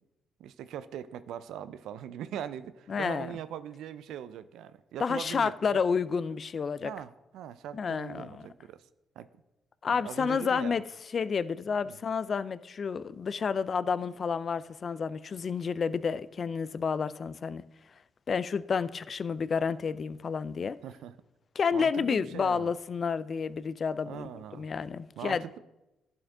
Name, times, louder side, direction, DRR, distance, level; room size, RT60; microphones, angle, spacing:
voice 1, 0.4-5.8 6.8-8.9 9.2-9.3 9.9-10.7 11.9-12.0 20.8-21.1 21.7-22.7 24.0-24.7 25.2-25.6, right 10 dB, 80° right, 0.4 m, -41 dB
voice 2, 2.9-3.4 5.0-6.9 7.7-8.4 9.8-10.8 11.1-17.6 18.3-20.8 21.6-25.4, left 6 dB, 45° left, 0.3 m, -30 dB
11.5 x 4.3 x 3.7 m
cardioid pair, 90°, 0 cm